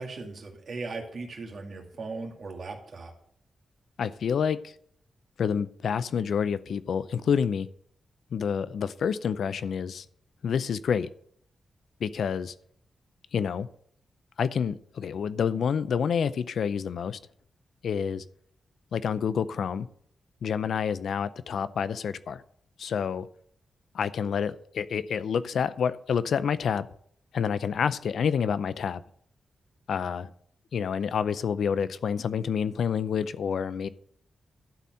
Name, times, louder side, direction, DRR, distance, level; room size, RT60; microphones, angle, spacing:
voice 1, 0.0-3.1, right 3 dB, 55° right, 1 dB, 2.3 m, -38 dB
voice 2, 4.0-4.7 5.4-7.7 8.3-10.1 10.4-11.1 12.0-12.5 13.3-13.7 14.4-17.2 17.8-18.2 18.9-19.9 20.4-22.4 22.8-23.3 23.9-26.9 27.3-29.0 29.9-30.3 30.7-33.9, left 7 dB, 75° left, 15 dB, 0.5 m, -28 dB
11.5 x 4.3 x 7.5 m, 0.64 s
cardioid pair, 85°, 0 cm